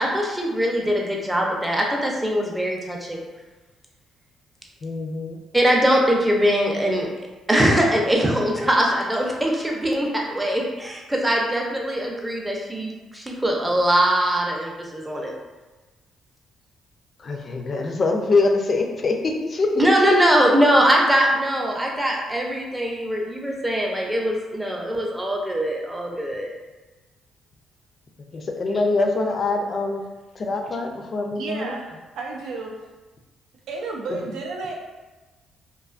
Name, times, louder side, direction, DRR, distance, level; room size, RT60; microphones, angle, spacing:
voice 1, 0.0-3.2 5.5-7.1 7.5-15.3 19.8-26.5, equal, 10° right, -1 dB, 0.5 m, -21 dB
voice 2, 4.8-5.4 17.2-19.9 28.3-30.0 30.4-31.7 34.1-34.3, left 3 dB, 45° left, 3 dB, 0.3 m, -24 dB
voice 3, 31.4-32.7 33.7-34.7, right 3 dB, 85° right, -1 dB, 0.4 m, -32 dB
2.5 x 2.3 x 2.4 m, 1.2 s
cardioid pair, 90°, 0 cm